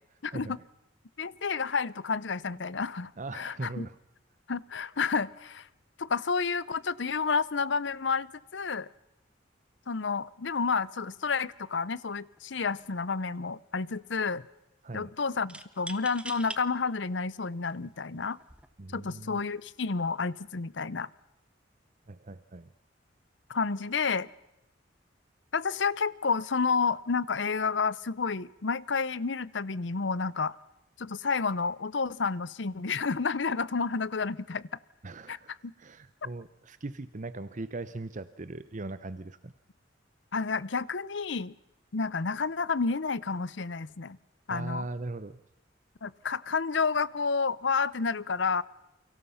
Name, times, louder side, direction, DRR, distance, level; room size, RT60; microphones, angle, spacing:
voice 1, 0.3-0.7 3.2-4.0 14.8-15.1 18.8-19.4 22.1-22.7 35.0-39.5 44.5-45.4, right 2 dB, 45° right, 14 dB, 0.8 m, -40 dB
voice 2, 1.2-3.9 4.5-5.7 6.0-8.9 9.9-14.5 14.9-18.4 18.9-21.1 23.5-24.3 25.5-30.6 31.0-34.7 35.3-35.4 35.6-35.7 40.3-41.5 41.9-44.2 44.5-44.8 46.0-48.6, left 5 dB, 70° left, 20 dB, 0.8 m, -30 dB
sound 1, 12.4-12.6 12.9-13.6 15.5-16.6 17.3-17.4 18.3-18.7, right 1 dB, 5° right, 1.3 m, -43 dB
29.5 x 24.0 x 5.7 m, 0.92 s
head